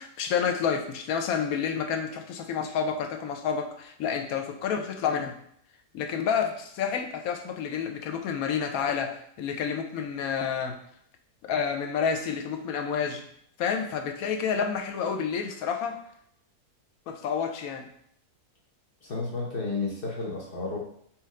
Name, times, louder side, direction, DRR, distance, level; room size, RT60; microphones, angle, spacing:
voice 1, 0.0-5.3 5.9-10.8 11.4-13.2 13.6-16.0 17.1-17.8, left 7 dB, 70° left, 5 dB, 1.0 m, -29 dB
voice 2, 19.0-20.8, left 3 dB, 40° left, -3 dB, 1.0 m, -32 dB
4.4 x 3.1 x 3.6 m, 0.68 s
omnidirectional pair, 1.6 m